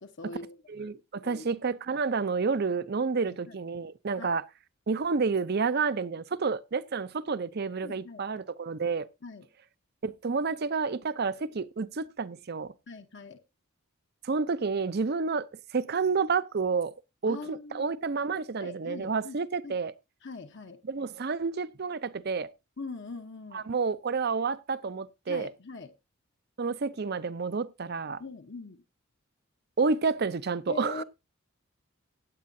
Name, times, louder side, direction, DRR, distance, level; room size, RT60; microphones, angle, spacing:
voice 1, 0.0-0.9 1.2-1.5 3.2-3.5 4.2-4.3 7.8-8.2 9.2-9.5 12.9-13.4 17.3-17.9 18.6-19.4 19.6-19.8 20.2-20.8 22.8-23.6 25.3-25.9 28.2-28.8 30.7-31.0, left 4 dB, 60° left, 0.9 m, -42 dB
voice 2, 0.7-4.4 4.9-9.1 10.0-12.7 14.2-15.5 15.7-16.9 17.2-19.9 20.9-22.5 23.5-25.5 26.6-28.2 29.8-31.0, right 4 dB, 50° right, 0.6 m, -30 dB
16.0 x 9.4 x 2.7 m
head